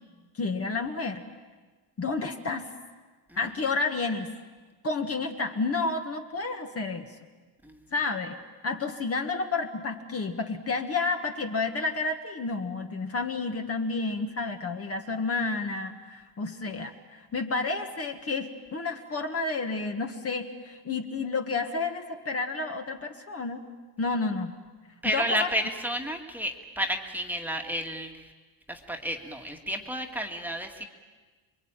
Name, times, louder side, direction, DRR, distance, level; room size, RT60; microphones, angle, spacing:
voice 1, 0.3-1.2 2.0-2.7 3.4-4.3 4.8-7.1 7.9-8.4 8.6-23.6 24.0-24.5 25.0-25.5, left 3 dB, 30° left, 4 dB, 1.8 m, -30 dB
voice 2, 25.0-28.1 28.7-30.9, equal, 5° right, 2 dB, 1.9 m, -31 dB
27.5 x 23.0 x 9.0 m, 1.3 s
cardioid pair, 150°, 45 cm